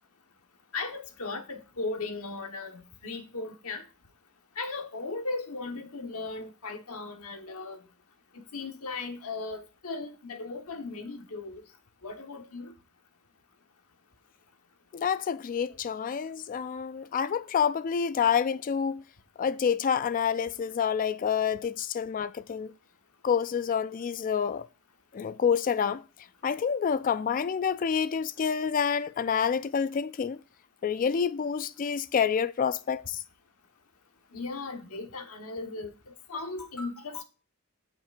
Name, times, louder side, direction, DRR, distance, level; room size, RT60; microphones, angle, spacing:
voice 1, 0.7-3.8 4.6-7.8 8.3-11.6 12.0-12.7 34.3-37.2, left 3 dB, 80° left, 1.3 m, -37 dB
voice 2, 14.9-19.0 19.4-22.7 23.2-24.7 25.1-26.0 26.4-30.4 30.8-33.2, left 7 dB, 40° left, 0.3 m, -28 dB
15.5 x 6.0 x 2.5 m
head